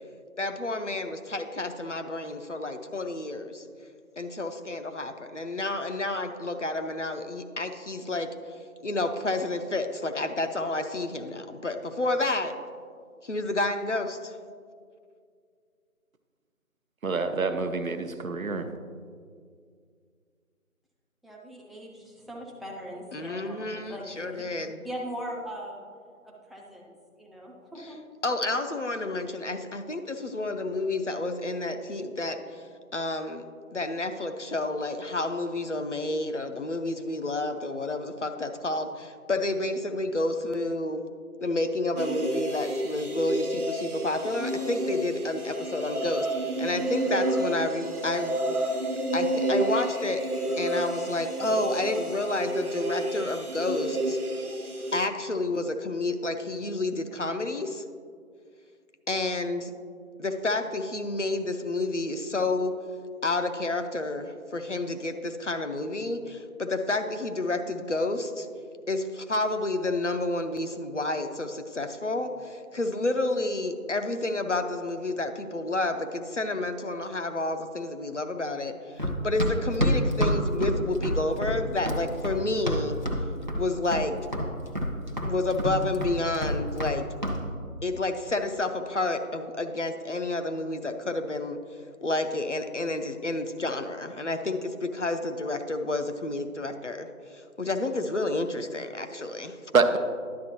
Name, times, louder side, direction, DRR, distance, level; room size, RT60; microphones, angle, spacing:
voice 1, 0.4-3.6 4.2-12.5 13.2-14.4 23.1-24.8 27.8-27.9 28.2-32.7 32.9-33.4 33.7-41.0 41.4-46.3 46.6-48.4 49.1-50.3 50.6-54.2 54.9-57.8 59.1-59.7 60.2-62.7 63.2-68.5 68.9-83.0 83.6-84.2 85.3-87.1 87.8-91.6 92.0-99.6, left 2 dB, 55° left, 7 dB, 0.6 m, -30 dB
voice 2, 17.0-18.7 99.7-100.0, right 4 dB, 70° right, 8 dB, 0.7 m, -25 dB
voice 3, 21.2-24.4 24.8-25.9 26.2-26.9 27.2-28.0, equal, ahead, -4 dB, 0.5 m, -40 dB
sound 1, 42.0-55.0, right 1 dB, 85° right, 1.1 m, -30 dB
Run, 79.0-83.2 83.5-84.1 84.3-87.0 87.2-87.4, equal, 35° right, 0.7 m, -27 dB
10.5 x 7.3 x 3.0 m, 2.1 s
figure-of-eight pair, 165°, 43 cm